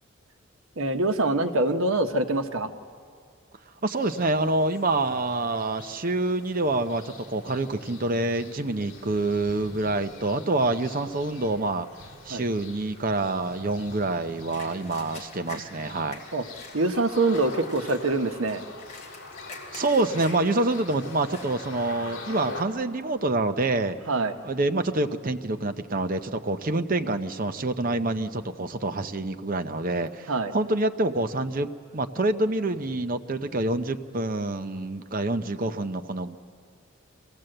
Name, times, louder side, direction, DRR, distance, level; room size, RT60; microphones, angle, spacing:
voice 1, 0.8-2.7 12.3-12.4 16.3-16.4 16.7-18.6 24.1-24.4 30.3-30.5, right 2 dB, 80° right, 6 dB, 1.1 m, -24 dB
voice 2, 3.8-11.9 12.2-16.2 19.7-24.0 24.4-36.4, right 2 dB, 40° right, 8 dB, 0.7 m, -27 dB
sound 1, 3.9-22.6, left 3 dB, 55° left, 3.4 m, -45 dB
sound 2, 14.5-21.6 22.1-22.2 22.7-23.1 23.8-24.0 24.3-25.4 25.8-26.3 26.7-26.8 27.6-28.2 28.6-31.7, left 3 dB, 35° left, 2.8 m, -48 dB
24.5 x 17.0 x 7.8 m, 2.2 s
head